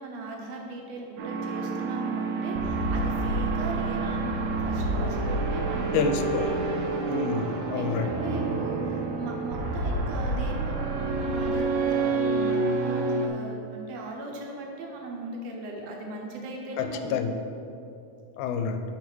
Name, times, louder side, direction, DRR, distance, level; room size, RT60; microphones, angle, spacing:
voice 1, 0.0-6.8 7.8-17.2, right 2 dB, 70° right, 0 dB, 1.7 m, -38 dB
sound 1, 1.2-13.3, right 3 dB, 90° right, 2.2 m, -28 dB
voice 2, 5.9-6.5 7.1-8.1 16.8-17.4 18.4-18.8, left 5 dB, 85° left, 7 dB, 2.0 m, -28 dB
5.5 x 4.8 x 6.2 m, 2.6 s
omnidirectional pair, 3.6 m